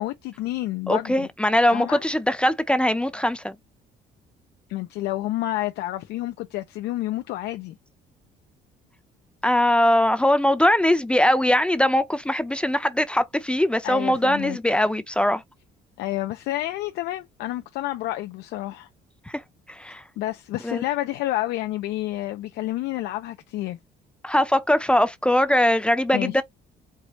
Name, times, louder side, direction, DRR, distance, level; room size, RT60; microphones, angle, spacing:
voice 1, 0.0-1.3 1.7-2.0 4.7-7.8 13.8-14.6 16.0-18.9 19.9-23.8 26.1-26.4, left 15 dB, 85° left, 0.6 m, -29 dB
voice 2, 0.9-3.6 9.4-15.4 19.3-19.4 19.7-20.0 20.6-20.8 24.2-26.4, left 1 dB, 5° left, 0.6 m, -21 dB
4.8 x 2.5 x 2.9 m
cardioid pair, 110°, 17 cm